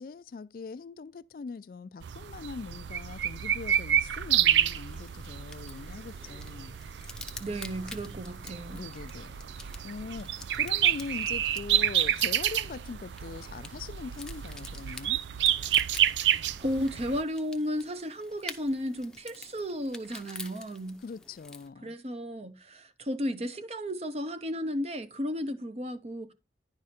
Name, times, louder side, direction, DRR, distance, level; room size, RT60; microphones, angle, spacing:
voice 1, 0.0-6.8 8.7-15.2 21.0-22.0, left 4 dB, 50° left, 0.3 m, -42 dB
sound 1, 2.0-17.2, right 10 dB, 85° right, 0.4 m, -29 dB
sound 2, 4.7-21.7, left 3 dB, 5° left, 0.7 m, -48 dB
voice 2, 7.4-8.9 16.6-21.0 21.8-26.3, equal, 35° right, 0.8 m, -34 dB
10.5 x 4.9 x 4.2 m
head